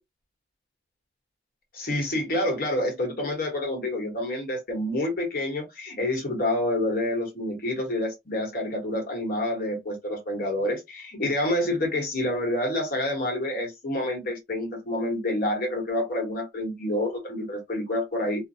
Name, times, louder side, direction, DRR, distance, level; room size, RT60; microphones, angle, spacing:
voice 1, 1.7-18.5, left 1 dB, 55° left, 1.1 m, -28 dB
2.5 x 2.1 x 2.7 m
head